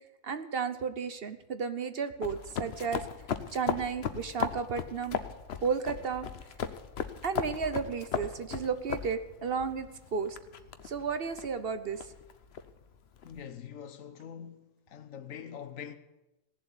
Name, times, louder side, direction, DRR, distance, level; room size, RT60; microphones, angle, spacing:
voice 1, 0.2-3.0 3.5-5.2 5.6-6.3 7.2-10.4 10.8-12.1, right 6 dB, 50° right, 1.0 m, -33 dB
sound 1, 2.2-13.4, left 7 dB, 55° left, 1.0 m, -38 dB
voice 2, 13.2-16.0, left 8 dB, 85° left, 1.4 m, -44 dB
16.5 x 7.5 x 9.8 m
omnidirectional pair, 1.4 m